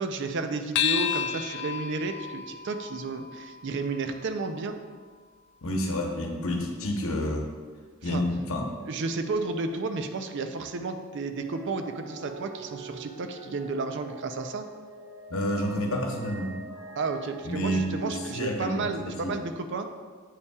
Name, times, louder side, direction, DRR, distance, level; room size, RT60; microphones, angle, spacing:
voice 1, 0.0-4.8 8.0-8.2 8.9-14.7 17.0-19.9, right 3 dB, 60° right, 7 dB, 0.5 m, -32 dB
sound 1, 0.7-5.5, left 9 dB, 55° left, 0.3 m, -33 dB
voice 2, 5.6-7.5 8.0-8.7 15.3-16.6 17.4-19.4, equal, 80° left, 2 dB, 0.9 m, -29 dB
sound 2, 11.4-18.7, right 2 dB, 90° right, 1.2 m, -46 dB
8.2 x 5.4 x 2.3 m, 1.5 s
head